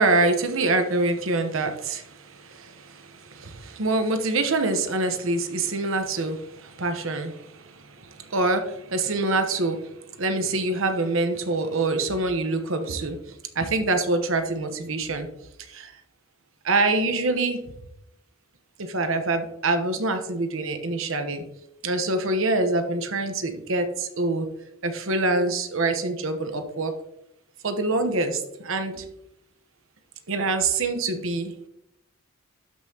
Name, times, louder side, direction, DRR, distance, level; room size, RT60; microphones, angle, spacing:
voice 1, 0.0-2.0 3.4-7.3 8.3-9.8 10.2-13.2 13.6-15.3 15.7-15.9 16.6-17.7 18.8-21.4 21.8-24.5 24.8-26.9 27.6-29.0 30.3-31.5, right 2 dB, 65° right, 7 dB, 1.0 m, -25 dB
12.5 x 5.5 x 2.9 m, 0.82 s
head